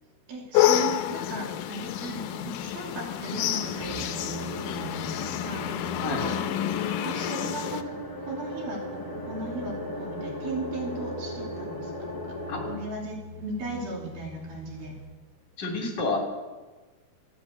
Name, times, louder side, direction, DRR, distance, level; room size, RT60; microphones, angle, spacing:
voice 1, 0.3-6.4 7.0-7.9 8.3-11.9 12.2-12.4 12.7-15.0, right 2 dB, 80° right, -2 dB, 4.8 m, -37 dB
sound 1, 0.5-7.8, left 12 dB, 75° left, 2.2 m, -28 dB
sound 2, 3.3-12.8, left 1 dB, 10° left, 2.2 m, -38 dB
sound 3, 3.6-15.2 15.5-15.6, equal, 45° right, 2.1 m, -45 dB
voice 2, 15.6-16.2, left 3 dB, 30° left, 0 dB, 3.3 m, -29 dB
12.5 x 10.0 x 8.0 m, 1.2 s
omnidirectional pair, 4.3 m